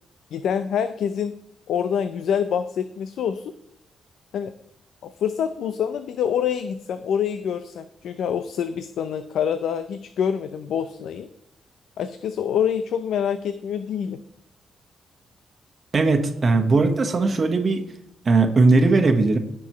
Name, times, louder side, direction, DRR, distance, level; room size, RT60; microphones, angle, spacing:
voice 1, 0.3-1.3 1.7-3.5 4.3-4.5 5.0-11.3 12.0-14.2, left 8 dB, 80° left, 10 dB, 0.6 m, -26 dB
voice 2, 15.9-17.8 18.2-19.4, right 3 dB, 35° right, 5 dB, 1.3 m, -18 dB
17.5 x 6.1 x 3.1 m, 0.79 s
cardioid pair, 140°, 0 cm